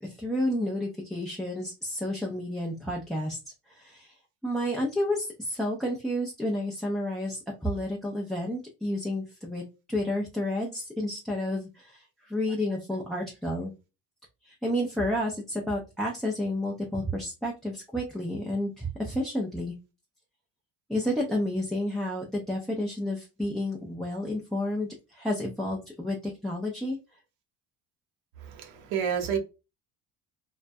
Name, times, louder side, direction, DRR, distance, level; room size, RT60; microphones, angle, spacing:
voice 1, 0.0-3.4 3.7-4.1 4.4-13.7 14.4-19.8 20.9-27.0, left 1 dB, ahead, 0.4 m, -31 dB
voice 2, 28.5-29.4, right 8 dB, 90° right, 0.8 m, -29 dB
2.3 x 2.1 x 2.6 m
cardioid pair, 120°, 34 cm